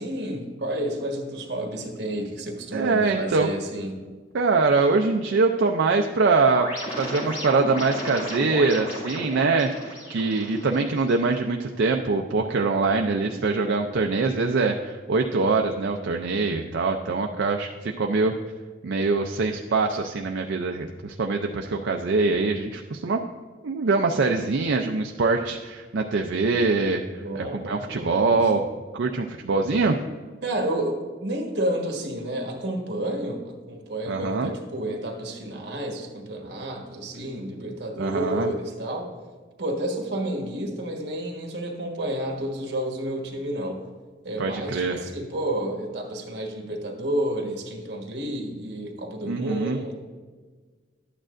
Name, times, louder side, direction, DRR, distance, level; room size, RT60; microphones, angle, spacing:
voice 1, 0.0-4.0 27.2-28.4 30.4-39.1 39.6-43.8 44.2-50.0, right 1 dB, 70° right, 2 dB, 1.4 m, -30 dB
voice 2, 2.7-3.5 4.3-6.7 7.0-18.3 18.8-23.2 23.6-28.7 28.9-30.0 34.1-34.5 38.0-38.5 44.4-45.0 49.2-49.8, right 3 dB, 85° right, 3 dB, 0.5 m, -23 dB
sound 1, 6.4-11.4, equal, 35° left, 2.3 m, -34 dB
11.5 x 8.8 x 2.5 m, 1.4 s
head